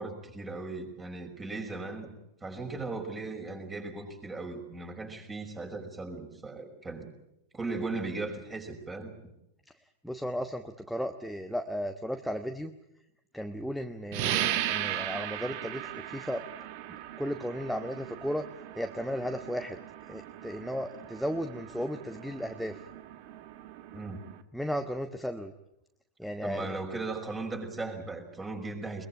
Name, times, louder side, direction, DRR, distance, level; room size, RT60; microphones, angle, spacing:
voice 1, 0.0-2.1 2.4-7.1 7.5-9.1 23.9-24.2 26.4-29.1, right 3 dB, 20° right, 3 dB, 5.6 m, -37 dB
voice 2, 10.0-12.7 13.3-16.4 17.2-18.4 18.8-19.8 20.1-22.8 24.5-25.5 26.2-26.8, equal, ahead, 6 dB, 1.2 m, -35 dB
sound 1, 14.1-24.4, right 12 dB, 55° right, 1.5 m, -37 dB
22.0 x 22.0 x 8.8 m, 0.84 s
hypercardioid pair, 95°, 0 cm